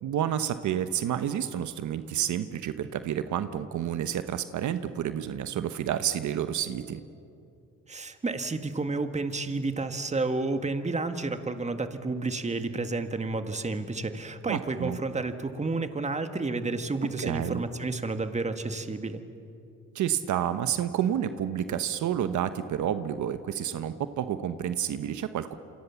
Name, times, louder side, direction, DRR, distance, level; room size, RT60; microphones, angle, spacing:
voice 1, 0.0-7.0 14.5-15.0 17.2-17.6 19.9-25.5, right 10 dB, 75° right, 10 dB, 1.1 m, -30 dB
voice 2, 7.9-19.2, right 3 dB, 25° right, 8 dB, 1.9 m, -31 dB
28.0 x 26.0 x 7.2 m, 2.6 s
cardioid pair, 90°, 30 cm